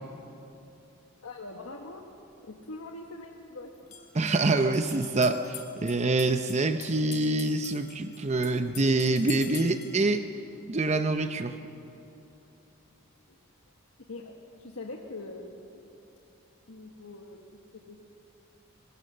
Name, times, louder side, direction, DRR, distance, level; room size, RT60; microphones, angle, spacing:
voice 1, 1.2-2.1 2.4-4.1 13.3-13.4 14.1-15.8 16.7-18.0, left 2 dB, 90° left, 2 dB, 1.4 m, -43 dB
sound 1, 3.7-10.0, left 8 dB, 35° left, 2.3 m, -46 dB
voice 2, 4.1-10.3 10.7-11.6, right 2 dB, 35° right, 8 dB, 0.7 m, -26 dB
24.0 x 20.5 x 6.7 m, 2.9 s
head